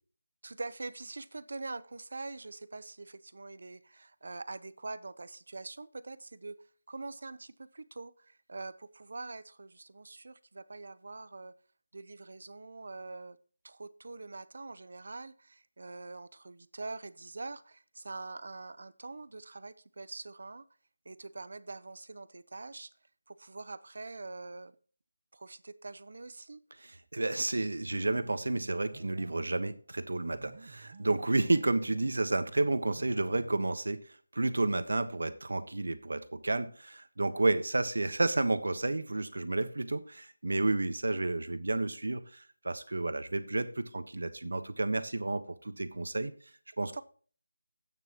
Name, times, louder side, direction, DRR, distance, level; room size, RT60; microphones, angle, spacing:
voice 1, 0.4-6.5 6.9-11.5 11.9-13.4 13.6-20.7 21.0-22.9 23.3-24.8 25.3-26.6 46.9-47.0, right 3 dB, 60° right, 0.7 m, -44 dB
voice 2, 26.8-46.3 46.8-47.0, right 2 dB, 80° right, 1.2 m, -31 dB
sound 1, 27.9-29.7 30.2-33.7, right 3 dB, 40° right, 1.0 m, -51 dB
12.0 x 9.1 x 3.0 m
figure-of-eight pair, 175°, 0 cm